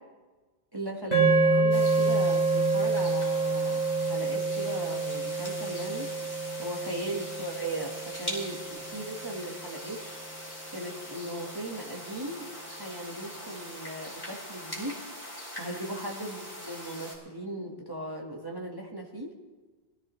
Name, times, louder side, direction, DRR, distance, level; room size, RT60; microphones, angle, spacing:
voice 1, 0.7-6.1 6.6-7.9 8.2-10.0 10.7-15.0 15.6-19.3, right 1 dB, 20° right, -1 dB, 1.5 m, -37 dB
sound 1, 1.1-9.5, right 3 dB, 35° right, 4.5 m, -27 dB
sound 2, 1.7-17.2, left 1 dB, 20° left, 3.4 m, -42 dB
21.5 x 13.0 x 3.2 m, 1.3 s
omnidirectional pair, 1.2 m